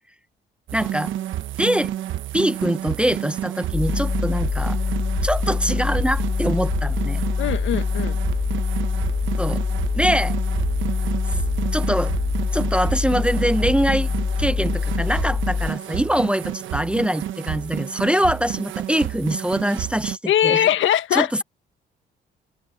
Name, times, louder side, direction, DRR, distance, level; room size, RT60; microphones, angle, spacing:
voice 1, 0.7-1.1 1.6-1.9 2.3-4.8 5.2-7.2 9.4-9.6 9.9-10.4 11.7-12.1 12.5-14.1 14.4-20.2 20.4-20.7 21.1-21.4, equal, 5° right, 0.7 m, -23 dB
sound 1, 0.7-20.2, right 12 dB, 75° right, 1.2 m, -30 dB
sound 2, 3.7-15.7, left 5 dB, 35° left, 1.4 m, -24 dB
voice 2, 7.4-8.2 20.3-21.4, left 11 dB, 75° left, 1.4 m, -21 dB
open air
cardioid pair, 90°, 20 cm